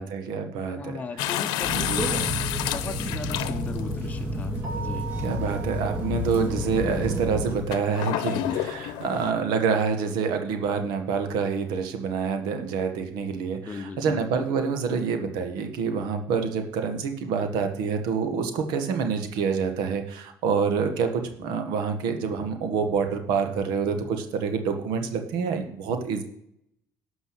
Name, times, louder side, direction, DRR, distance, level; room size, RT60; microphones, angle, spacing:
voice 1, 0.0-1.3 1.7-2.1 5.2-26.2, right 5 dB, 85° right, 6 dB, 1.8 m, -27 dB
voice 2, 0.7-5.1 13.7-14.2, left 4 dB, 20° left, 5 dB, 0.9 m, -38 dB
sound 1, 1.2-3.9 4.8-4.9 7.7-9.3, left 13 dB, 85° left, 0.8 m, -29 dB
sound 2, 1.6-7.6, equal, 30° right, 3.2 m, -30 dB
Keyboard (musical), 4.6-7.1, right 6 dB, 55° right, 4.5 m, -41 dB
12.0 x 5.5 x 8.0 m, 0.72 s
cardioid pair, 125°, 7 cm